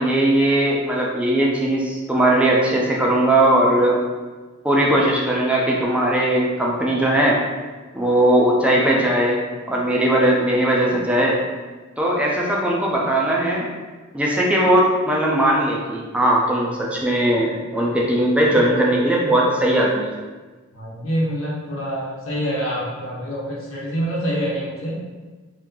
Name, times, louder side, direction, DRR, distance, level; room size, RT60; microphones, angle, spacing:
voice 1, 0.0-4.0 4.6-7.4 7.9-9.4 9.7-11.4 12.0-13.7 14.1-20.1, right 1 dB, 5° right, -4 dB, 0.5 m, -19 dB
voice 2, 20.7-25.0, equal, 75° left, -6 dB, 0.9 m, -26 dB
3.1 x 2.7 x 3.6 m, 1.3 s
head